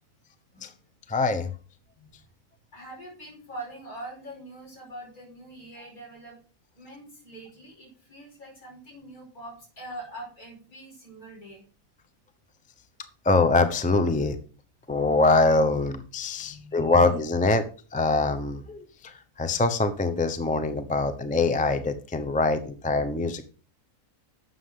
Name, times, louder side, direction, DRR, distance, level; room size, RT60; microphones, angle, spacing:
voice 1, 1.1-1.5 13.2-14.4 14.9-17.6 17.9-19.1 19.4-23.4, left 3 dB, 10° left, 9 dB, 0.6 m, -23 dB
voice 2, 2.7-6.4 6.8-11.6 16.3-17.1 22.3-22.4, right 1 dB, 70° left, 0 dB, 5.6 m, -43 dB
12.0 x 7.7 x 3.7 m, 0.39 s
omnidirectional pair, 1.6 m